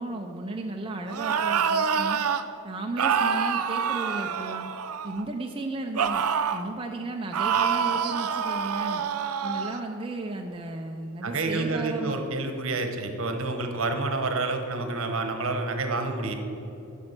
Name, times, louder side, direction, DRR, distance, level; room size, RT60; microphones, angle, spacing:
voice 1, 0.0-2.2 2.6-4.7 5.0-6.2 6.5-9.0 9.4-12.2, right 2 dB, 25° right, 2 dB, 0.5 m, -34 dB
sound 1, 1.1-2.4 3.0-5.2 6.0-6.7 7.3-9.8, right 7 dB, 90° right, 0.5 m, -26 dB
voice 2, 11.2-16.3, right 3 dB, 65° right, 6 dB, 1.0 m, -28 dB
11.5 x 5.4 x 6.6 m, 2.9 s
head